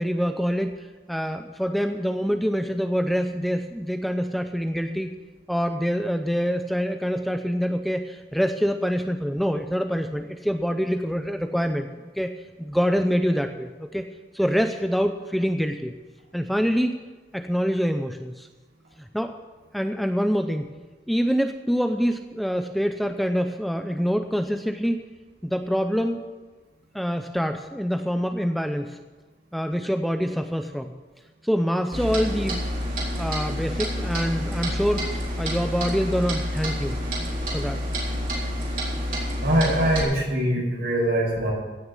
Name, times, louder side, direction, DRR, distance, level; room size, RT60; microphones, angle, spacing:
voice 1, 0.0-5.1 5.5-11.9 12.2-12.3 12.6-14.1 14.3-15.9 16.3-17.0 17.3-18.5 19.0-19.4 19.7-20.7 21.1-25.1 25.4-26.3 26.9-29.0 29.5-30.9 31.4-32.7 33.2-37.0 37.5-37.8, equal, ahead, 6 dB, 0.5 m, -25 dB
Clock, 31.9-40.0, equal, 45° right, 4.0 m, -28 dB
voice 2, 39.4-41.5, right 1 dB, 65° right, -2 dB, 5.3 m, -22 dB
16.5 x 6.6 x 8.1 m, 1.3 s
head